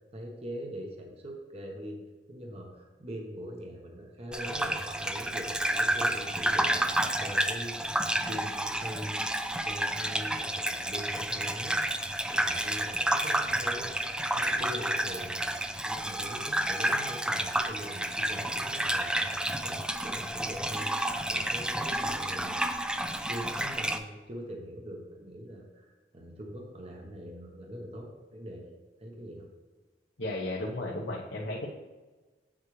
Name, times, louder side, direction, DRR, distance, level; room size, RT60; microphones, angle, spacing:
voice 1, 0.1-2.0 2.3-7.8 8.2-9.2 9.5-11.8 12.3-13.9 14.3-22.6 23.3-29.4, equal, 35° right, 1 dB, 1.1 m, -42 dB
Gurgling / Bathtub (filling or washing), 4.3-24.0, right 1 dB, 5° right, 0.4 m, -30 dB
voice 2, 30.2-31.7, left 1 dB, 85° left, -4 dB, 1.1 m, -34 dB
8.2 x 7.4 x 3.3 m, 1.3 s
head